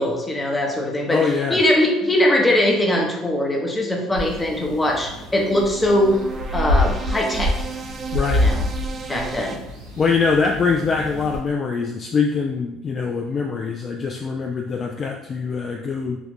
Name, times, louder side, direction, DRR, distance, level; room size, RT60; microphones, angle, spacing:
voice 1, 0.0-6.2 6.5-7.5 8.3-8.6 9.1-9.6, left 1 dB, 15° left, 0 dB, 0.8 m, -21 dB
voice 2, 1.1-1.6 8.1-8.4 10.0-16.2, left 5 dB, 40° left, 1 dB, 0.3 m, -23 dB
sound 1, 4.2-11.4, left 1 dB, 85° right, 0.8 m, -26 dB
sound 2, 5.0-9.6, right 5 dB, 45° right, 0.4 m, -35 dB
2.9 x 2.4 x 3.4 m, 0.92 s
hypercardioid pair, 65°, 0 cm